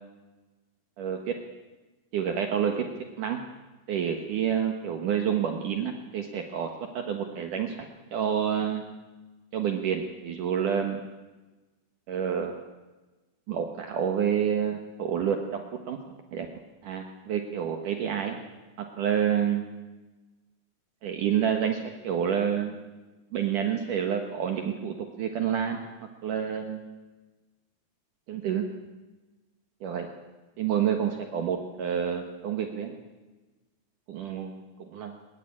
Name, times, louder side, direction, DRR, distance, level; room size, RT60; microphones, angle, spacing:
voice 1, 1.0-1.3 2.1-2.9 3.2-3.4 3.9-7.8 8.1-8.8 9.5-11.0 12.1-12.5 13.5-15.4 15.9-16.0 16.3-16.5 16.8-18.4 18.8-19.6 21.0-22.8 23.3-25.8 26.2-26.9 28.3-28.7 29.8-30.1 30.6-32.9 34.1-34.6 34.9-35.1, right 8 dB, 60° right, 4 dB, 2.7 m, -28 dB
23.0 x 21.0 x 8.8 m, 1.2 s
omnidirectional pair, 4.6 m